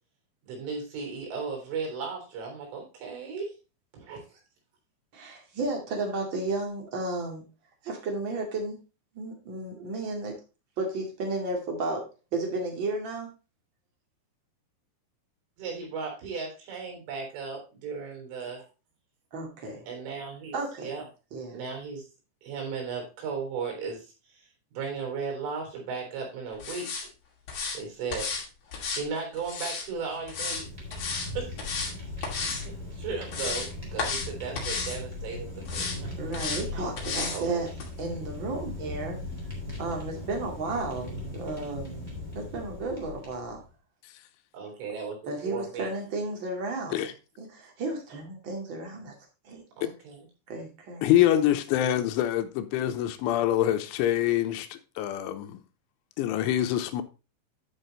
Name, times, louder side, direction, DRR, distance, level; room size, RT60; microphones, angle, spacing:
voice 1, 0.5-3.5 4.0-4.3 15.6-18.7 19.9-21.0 21.5-22.1 22.4-24.1 24.3-24.5 24.7-26.9 27.7-28.3 28.9-30.7 31.2-31.6 32.2-36.1 37.2-37.6 44.5-45.9 46.9-47.1 49.8-50.3, right 5 dB, 85° right, 6.0 m, -36 dB
voice 2, 5.1-7.4 7.8-8.8 9.1-10.4 10.8-13.3 19.3-19.8 20.5-20.9 21.3-21.6 36.2-37.7 38.0-39.2 39.8-43.6 45.3-47.0 47.4-49.1 49.4-49.6 50.5-51.1, right 2 dB, 40° right, 1.8 m, -33 dB
sound 1, 26.6-27.0 27.5-27.8 28.1-28.4 28.7-29.9 30.3-30.6 30.9-31.3 31.6-31.9 32.2-32.6 33.0-33.7 34.0-34.3 34.5-35.0 35.6-36.0 36.3-36.6 37.0-37.4 37.8-37.9, left 4 dB, 45° left, 3.0 m, -32 dB
Fire, 30.1-43.7, left 2 dB, 10° right, 2.2 m, -39 dB
voice 3, 51.0-55.6 56.2-57.0, left 12 dB, 85° left, 3.1 m, -25 dB
11.0 x 5.6 x 3.9 m
omnidirectional pair, 5.5 m